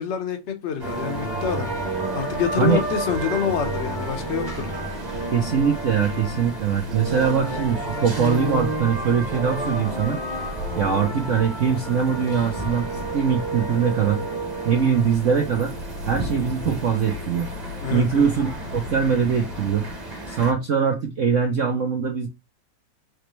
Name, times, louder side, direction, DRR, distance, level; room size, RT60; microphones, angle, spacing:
voice 1, 0.0-1.7 2.1-4.7 17.8-18.3, left 8 dB, 45° left, 0.9 m, -26 dB
sound 1, 0.8-20.5, right 1 dB, 25° right, 1.1 m, -30 dB
voice 2, 5.3-10.2 10.8-14.2 14.6-15.7 16.1-17.5 17.9-19.9 20.3-22.3, right 6 dB, 60° right, 0.8 m, -22 dB
5.0 x 3.3 x 3.1 m
omnidirectional pair, 2.2 m